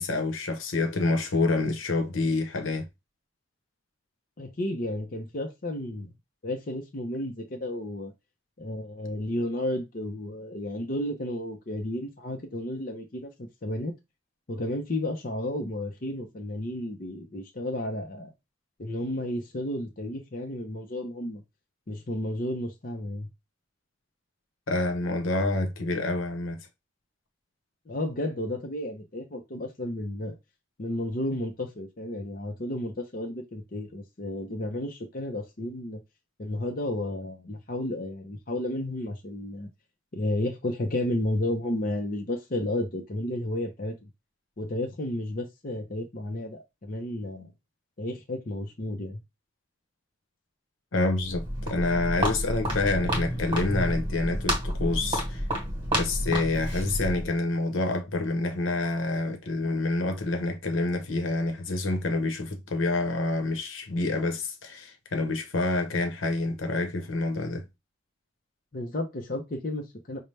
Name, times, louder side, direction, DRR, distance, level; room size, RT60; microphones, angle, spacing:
voice 1, 0.0-2.9 24.7-26.6 50.9-55.4 55.9-67.7, left 2 dB, 80° left, 0.9 m, -27 dB
voice 2, 4.4-6.1 6.4-8.1 8.6-13.9 14.5-18.3 18.8-21.4 21.9-23.3 27.9-30.4 30.8-36.0 36.4-39.7 40.1-44.1 44.6-47.5 48.0-49.2 68.7-70.2, left 1 dB, 45° left, 0.6 m, -32 dB
Walk footsteps, 51.2-57.4, equal, 25° right, 1.3 m, -30 dB
5.5 x 2.2 x 3.2 m
head